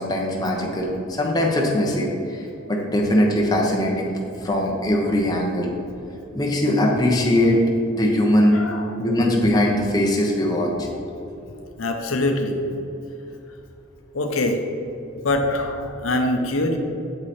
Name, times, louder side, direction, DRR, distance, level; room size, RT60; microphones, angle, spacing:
voice 1, 0.0-4.1 4.4-5.7 6.3-7.6 7.9-8.6 9.0-10.9, left 1 dB, 20° left, -2 dB, 0.8 m, -21 dB
voice 2, 8.5-9.1 11.8-12.6 14.1-14.6 15.2-16.8, left 2 dB, 90° left, 4 dB, 0.8 m, -24 dB
7.8 x 4.8 x 4.3 m, 2.9 s
head